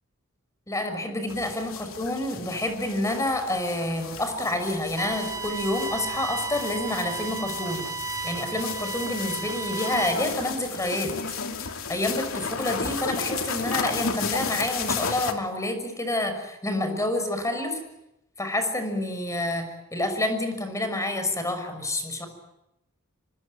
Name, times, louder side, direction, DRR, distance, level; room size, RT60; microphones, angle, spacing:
voice 1, 0.7-11.1 11.9-17.8 18.4-22.3, left 1 dB, 15° left, 8 dB, 6.1 m, -28 dB
sound 1, 1.3-15.3, left 5 dB, 70° left, 2.9 m, -34 dB
sound 2, 5.0-10.1, right 5 dB, 15° right, 1.4 m, -34 dB
26.5 x 24.5 x 9.1 m, 0.89 s
head